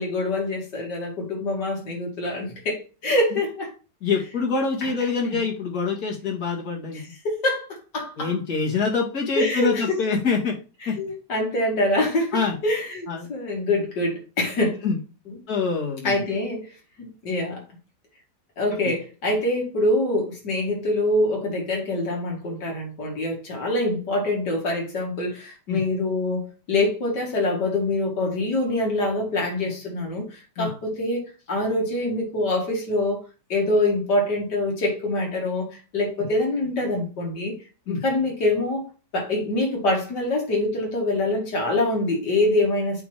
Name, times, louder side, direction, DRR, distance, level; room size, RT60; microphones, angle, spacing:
voice 1, 0.0-3.7 4.8-5.1 6.9-8.4 9.4-10.0 10.8-14.8 15.3-15.4 16.0-16.7 17.0-17.6 18.6-33.2 33.5-37.5 37.9-38.9 39.1-43.0, left 1 dB, 80° left, -1 dB, 2.7 m, -25 dB
voice 2, 4.0-7.0 8.2-10.5 10.9-11.0 12.3-12.5 13.1-13.3 14.8-15.0 15.5-16.1 25.7-25.8 30.6-30.7 37.9-38.0, left 5 dB, 65° left, -1 dB, 2.5 m, -25 dB
8.2 x 3.0 x 5.0 m, 0.33 s
omnidirectional pair, 1.8 m